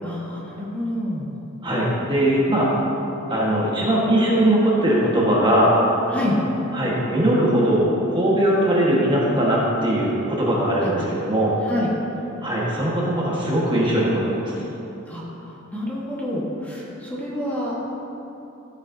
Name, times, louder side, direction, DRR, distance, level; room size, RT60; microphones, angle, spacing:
voice 1, 0.0-1.3 6.1-6.4 10.8-10.9 11.6-11.9 15.1-17.7, left 1 dB, 10° left, -6 dB, 1.5 m, -28 dB
voice 2, 1.6-2.7 3.3-5.7 6.7-11.5 12.4-14.1 14.4-14.5, right 1 dB, 25° right, -5 dB, 1.5 m, -20 dB
14.5 x 7.2 x 2.7 m, 3.0 s
head